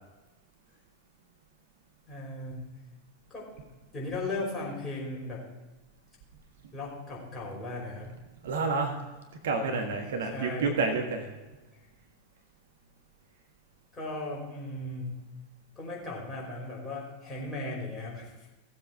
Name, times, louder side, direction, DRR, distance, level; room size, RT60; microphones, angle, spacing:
voice 1, 2.1-2.7 3.3-3.5 3.9-5.4 6.7-8.1 10.2-10.7 13.9-15.2 15.7-18.5, left 2 dB, 15° left, -4 dB, 5.1 m, -37 dB
voice 2, 8.4-9.0 9.4-11.3, right 4 dB, 60° right, 3 dB, 1.5 m, -29 dB
17.0 x 7.6 x 4.7 m, 1.2 s
figure-of-eight pair, 90°, 0 cm